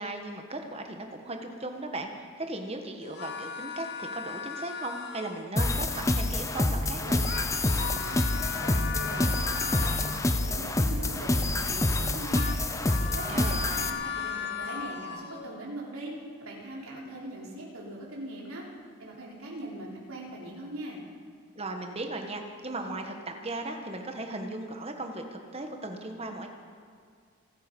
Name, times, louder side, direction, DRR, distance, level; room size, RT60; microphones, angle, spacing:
voice 1, 0.0-7.2 13.1-13.7 21.6-26.5, right 2 dB, 30° right, 4 dB, 1.4 m, -37 dB
sound 1, 3.0-5.6 7.0-10.7 11.9-15.6, left 6 dB, 50° left, 0.9 m, -37 dB
sound 2, 5.6-13.9, left 2 dB, 15° left, 0.6 m, -27 dB
voice 2, 7.7-10.1 10.5-12.6 13.0-16.1 16.4-18.7 19.0-21.0, right 1 dB, 80° right, -3 dB, 4.0 m, -41 dB
26.5 x 9.4 x 5.4 m, 2.3 s
head